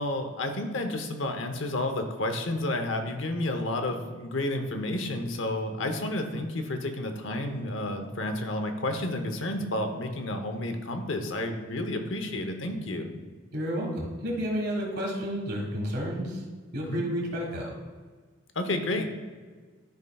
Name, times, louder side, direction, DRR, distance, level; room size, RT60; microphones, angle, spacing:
voice 1, 0.0-13.1 16.8-17.1 18.5-19.1, left 1 dB, 75° left, 6 dB, 0.8 m, -31 dB
voice 2, 13.5-16.4 16.7-17.7, equal, 55° right, -1 dB, 1.6 m, -31 dB
12.0 x 5.4 x 2.3 m, 1.5 s
head